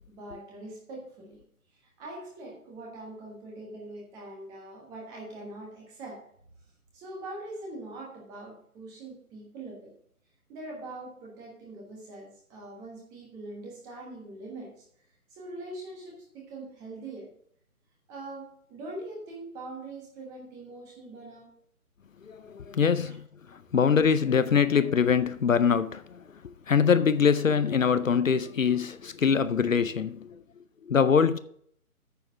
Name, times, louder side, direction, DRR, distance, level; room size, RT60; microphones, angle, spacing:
voice 1, 0.1-1.4 2.0-6.2 6.9-9.9 10.5-14.8 15.3-17.3 18.1-21.5 23.0-23.1, right 2 dB, 10° right, 1.2 m, -42 dB
voice 2, 22.2-26.2 26.7-30.4 30.9-31.4, left 6 dB, 65° left, 0.6 m, -24 dB
9.1 x 6.8 x 5.0 m
figure-of-eight pair, 145°, 44 cm